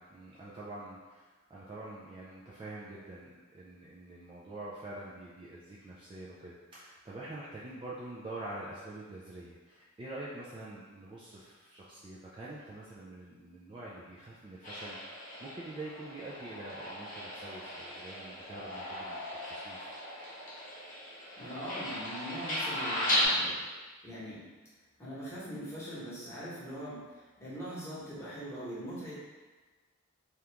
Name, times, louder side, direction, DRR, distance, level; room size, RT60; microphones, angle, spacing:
voice 1, 0.0-19.9, right 2 dB, 25° right, -7 dB, 0.3 m, -46 dB
sound 1, 14.6-23.3, left 1 dB, 40° left, 0.9 m, -37 dB
voice 2, 21.4-24.4 25.0-29.2, equal, 15° left, -10 dB, 1.1 m, -42 dB
2.9 x 2.4 x 3.3 m, 1.3 s
head